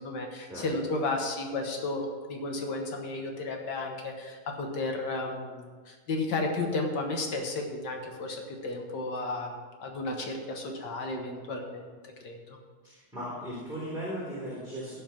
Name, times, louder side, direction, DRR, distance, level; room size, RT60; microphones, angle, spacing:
voice 1, 0.0-12.6, left 2 dB, 60° left, 2 dB, 1.8 m, -33 dB
voice 2, 12.8-14.9, equal, ahead, -7 dB, 3.6 m, -37 dB
15.0 x 5.6 x 6.0 m, 1.5 s
omnidirectional pair, 2.2 m